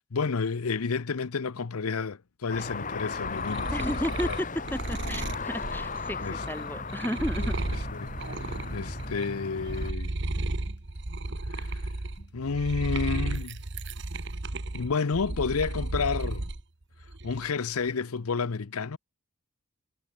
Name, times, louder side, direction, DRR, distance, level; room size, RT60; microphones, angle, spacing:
voice 1, 0.1-3.9 4.2-4.4 6.2-6.4 7.4-7.5 7.9-8.1 8.4-10.1 11.5-11.8 12.3-13.6 14.7-16.4 17.2-19.0, left 5 dB, 85° left, 0.7 m, -30 dB
sound 1, 2.5-9.9, left 4 dB, 35° left, 1.8 m, -36 dB
sound 2, 3.0-9.3 9.6-16.6 17.0-17.7, right 2 dB, 55° right, 1.3 m, -34 dB
voice 2, 3.7-4.5 4.7-7.6, equal, 10° left, 1.5 m, -33 dB
sound 3, 7.0-12.4, left 1 dB, 50° left, 7.6 m, -60 dB
head